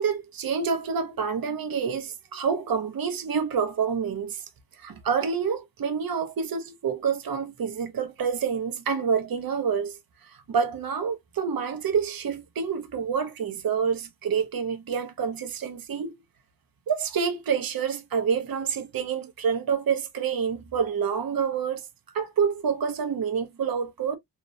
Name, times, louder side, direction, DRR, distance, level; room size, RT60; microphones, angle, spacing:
voice 1, 0.0-4.4 4.8-10.0 10.2-16.1 16.9-21.8 22.1-24.2, right 6 dB, 60° right, 0.6 m, -27 dB
2.8 x 2.0 x 2.5 m
wide cardioid pair, 120°, 40 cm